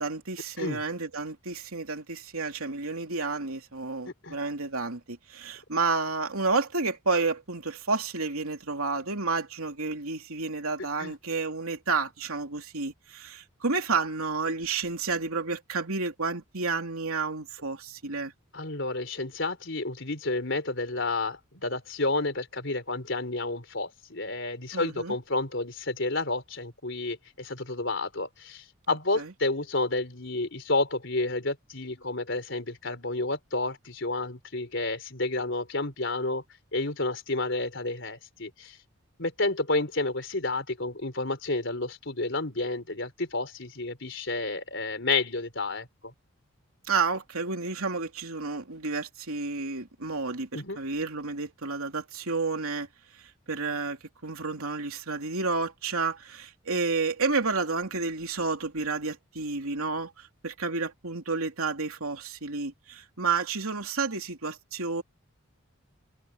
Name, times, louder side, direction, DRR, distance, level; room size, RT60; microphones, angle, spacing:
voice 1, 0.0-18.3 24.7-25.1 28.9-29.3 46.9-52.9 53.5-65.0, right 4 dB, 85° right, 3.1 m, -31 dB
voice 2, 18.5-36.4 36.7-38.8 39.2-46.1 50.5-50.8, left 2 dB, 55° left, 4.4 m, -30 dB
head